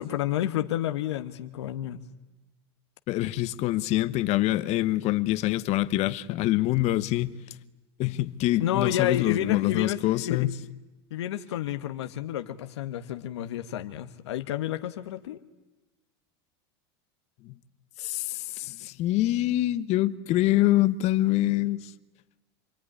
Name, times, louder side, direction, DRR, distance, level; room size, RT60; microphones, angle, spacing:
voice 1, 0.0-2.0 8.6-10.5 11.1-15.4, left 11 dB, 85° left, 1.3 m, -30 dB
voice 2, 3.1-7.6 8.0-10.5 17.4-17.6 18.0-21.9, left 16 dB, 50° left, 1.2 m, -25 dB
28.0 x 21.5 x 10.0 m
supercardioid pair, 110°, 14 cm